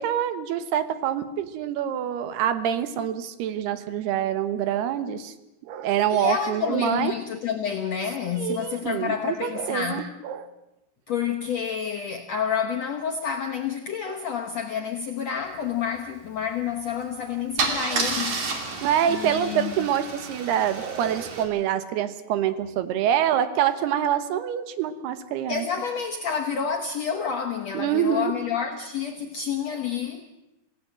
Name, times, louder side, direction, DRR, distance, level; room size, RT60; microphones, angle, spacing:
voice 1, 0.0-5.3 5.6-7.1 8.4-10.5 14.1-14.2 18.8-25.7 27.2-27.3 27.7-28.3, right 10 dB, 80° right, 3.1 m, -26 dB
voice 2, 6.1-10.1 11.1-18.4 19.1-19.9 25.5-30.3, left 7 dB, 70° left, 1.6 m, -29 dB
Car / Engine starting / Idling, 16.9-17.0 17.6-21.4, right 4 dB, 50° right, 4.0 m, -30 dB
26.5 x 16.5 x 7.6 m
omnidirectional pair, 4.6 m